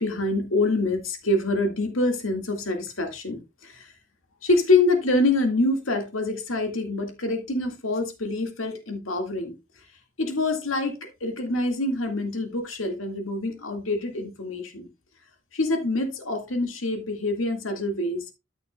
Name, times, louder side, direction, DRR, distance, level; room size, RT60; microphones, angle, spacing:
voice 1, 0.0-3.9 4.4-9.6 10.2-14.9 15.5-18.3, left 2 dB, 85° left, 2.0 m, -26 dB
13.5 x 6.1 x 2.3 m
head